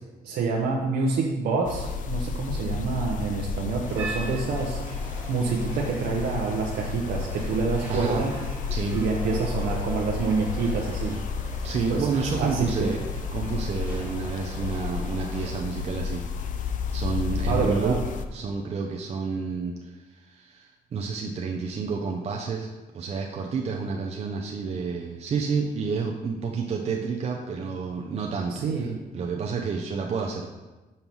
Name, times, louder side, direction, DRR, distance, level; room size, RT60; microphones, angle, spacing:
voice 1, 0.2-8.3 8.9-11.2 11.9-12.9 17.5-18.0 28.5-29.0, right 4 dB, 85° right, -2 dB, 0.8 m, -27 dB
sound 1, 1.7-18.2, left 5 dB, 55° left, 0.5 m, -32 dB
sound 2, 3.8-15.6, right 1 dB, 10° right, 1.3 m, -42 dB
voice 2, 7.9-8.2 8.7-9.0 11.6-13.0 13.3-16.2 16.6-18.0 18.3-19.8 20.1-28.7 29.1-30.5, right 5 dB, 40° right, 0 dB, 0.5 m, -30 dB
5.6 x 5.4 x 4.5 m, 1.2 s
cardioid pair, 155°, 16 cm